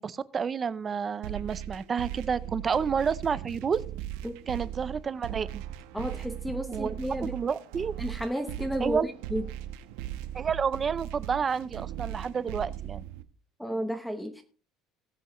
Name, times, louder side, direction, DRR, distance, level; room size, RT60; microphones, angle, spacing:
voice 1, 0.0-3.8 4.5-5.6 6.7-7.9 8.8-9.1 10.3-13.0, right 6 dB, 20° right, 0.5 m, -30 dB
sound 1, 1.2-13.2, right 12 dB, 85° right, 0.9 m, -38 dB
voice 2, 5.9-7.3 8.0-9.4 13.6-14.4, equal, ahead, 0.9 m, -32 dB
19.0 x 7.8 x 3.1 m
cardioid pair, 175°, 0 cm